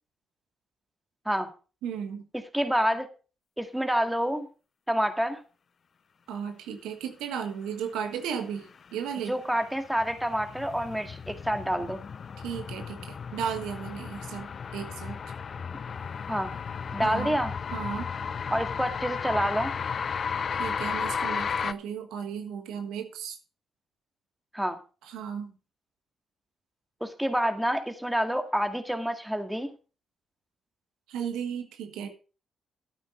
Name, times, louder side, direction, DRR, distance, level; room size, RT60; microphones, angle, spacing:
voice 1, 1.8-2.3 6.3-9.3 12.4-15.2 17.0-17.4 17.7-18.1 20.5-23.4 25.0-25.5 31.1-32.1, right 7 dB, 85° right, 6 dB, 1.4 m, -35 dB
voice 2, 2.5-3.1 3.6-4.5 4.9-5.4 9.3-12.0 16.3-16.5 16.9-17.5 18.5-19.7 24.5-24.8 27.0-29.7, equal, 5° right, 6 dB, 2.1 m, -28 dB
sound 1, 8.9-21.7, left 6 dB, 55° left, 0.5 m, -34 dB
12.0 x 9.1 x 3.9 m, 0.35 s
supercardioid pair, 50°, 0 cm